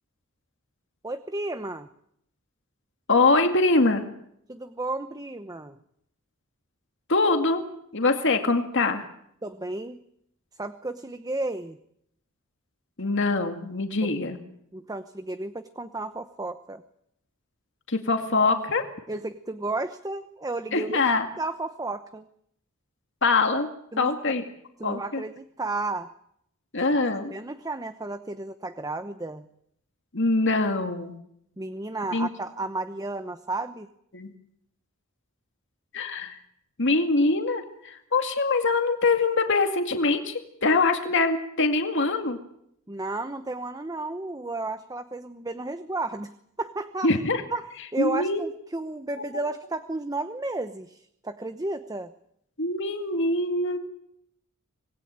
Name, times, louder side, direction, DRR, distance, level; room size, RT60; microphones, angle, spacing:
voice 1, 1.0-1.9 4.5-5.8 9.4-10.0 10.6-11.8 14.7-16.8 19.1-21.0 21.4-22.2 23.9-24.1 24.8-26.1 27.3-29.5 31.6-33.9 42.9-46.3 46.6-47.2 47.5-52.1, right 2 dB, 15° right, 10 dB, 0.9 m, -33 dB
voice 2, 3.1-4.1 7.1-7.6 7.9-9.1 13.0-14.4 17.9-18.8 20.7-21.2 23.2-23.7 24.0-24.4 24.8-25.2 26.7-27.3 30.1-31.2 32.1-32.3 34.1-34.3 35.9-36.4 36.8-42.4 47.0-47.4 48.0-48.4 52.6-53.8, left 3 dB, 60° left, 6 dB, 2.2 m, -23 dB
26.0 x 20.0 x 8.8 m, 0.75 s
head